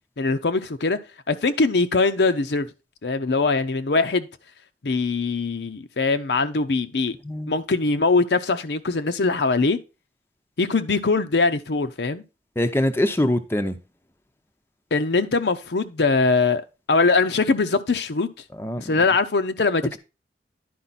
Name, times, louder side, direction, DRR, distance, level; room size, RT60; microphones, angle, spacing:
voice 1, 0.2-1.0 1.3-2.7 3.0-4.3 4.8-7.1 7.5-9.8 10.6-12.2 14.9-16.6 16.9-18.3 18.8-20.0, left 3 dB, 70° left, 0.7 m, -22 dB
voice 2, 7.2-7.6 12.6-13.8 18.5-19.0, left 1 dB, 15° left, 0.6 m, -24 dB
10.5 x 5.0 x 4.1 m
head